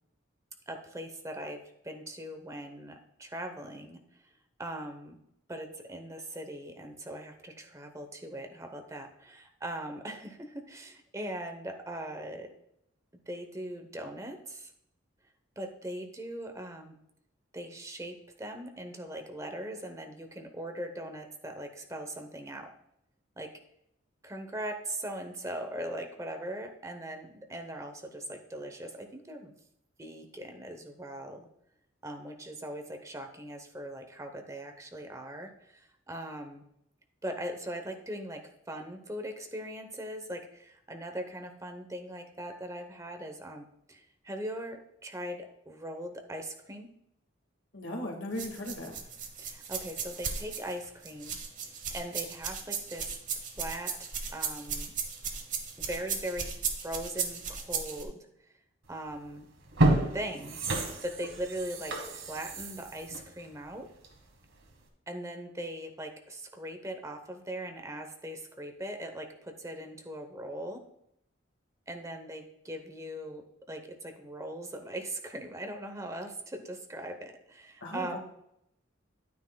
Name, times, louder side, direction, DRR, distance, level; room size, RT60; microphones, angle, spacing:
voice 1, 0.7-4.0 4.6-5.2 5.5-12.5 13.3-14.7 15.6-17.0 17.5-22.7 23.4-23.5 24.2-29.5 30.0-31.5 32.0-36.6 37.2-46.9 49.4-51.4 51.6-54.9 55.8-56.5 56.8-58.3 58.9-59.5 60.1-60.6 61.0-63.9 65.1-70.8 71.9-78.2, right 1 dB, 15° right, 5 dB, 0.9 m, -40 dB
voice 2, 47.7-48.9 77.8-78.2, left 1 dB, 75° left, 1 dB, 1.8 m, -37 dB
sound 1, 48.4-58.0, right 6 dB, 40° right, 1.0 m, -36 dB
sound 2, 59.0-59.2 59.6-64.3 64.7-64.8, right 1 dB, 80° right, 1.5 m, -30 dB
10.0 x 9.4 x 2.3 m, 0.77 s
head